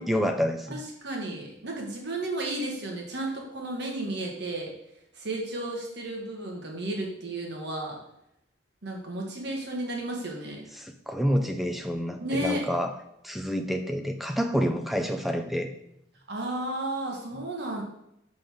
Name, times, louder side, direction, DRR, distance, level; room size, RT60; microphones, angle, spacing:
voice 1, 0.0-0.7 10.8-12.9 13.2-15.7, equal, ahead, 5 dB, 0.5 m, -28 dB
voice 2, 0.7-4.7 5.1-8.0 8.8-10.6 12.2-12.6 16.3-17.8, right 1 dB, 60° right, 0 dB, 1.4 m, -33 dB
6.0 x 5.2 x 3.6 m, 0.79 s
head